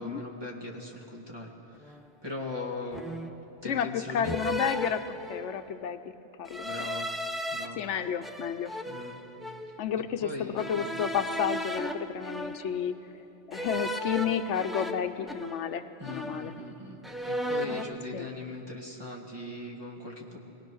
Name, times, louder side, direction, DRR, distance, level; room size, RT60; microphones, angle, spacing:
voice 1, 0.0-3.2 3.6-4.4 6.6-7.1 7.5-7.8 8.8-9.2 10.2-10.8 16.0-17.0 17.3-20.4, left 2 dB, 20° right, -2 dB, 2.3 m, -39 dB
sound 1, 1.8-2.1 2.9-3.5 4.2-5.7 6.5-7.7 8.2-9.8 10.6-12.9 13.5-15.8 16.0-16.8 17.0-18.0, equal, ahead, 0.5 m, -36 dB
voice 2, 3.6-6.0 6.4-6.9 7.8-8.7 9.8-12.9 13.5-16.5 18.1-18.3, left 8 dB, 85° left, 10 dB, 1.0 m, -31 dB
23.0 x 18.0 x 6.3 m, 3.0 s
omnidirectional pair, 1.2 m